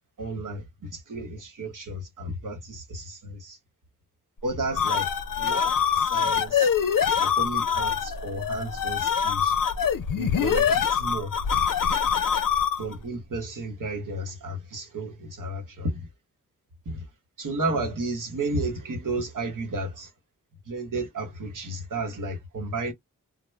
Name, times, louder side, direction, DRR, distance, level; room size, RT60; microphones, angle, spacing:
voice 1, 0.2-3.6 4.4-5.1 5.4-6.7 7.2-9.6 10.1-11.3 12.8-16.1 16.8-17.1 17.4-20.1 20.7-22.9, right 2 dB, 75° right, 1.0 m, -33 dB
sound 1, 4.5-13.0, left 7 dB, 80° left, 0.5 m, -24 dB
2.1 x 2.1 x 3.2 m
wide cardioid pair, 105°, 32 cm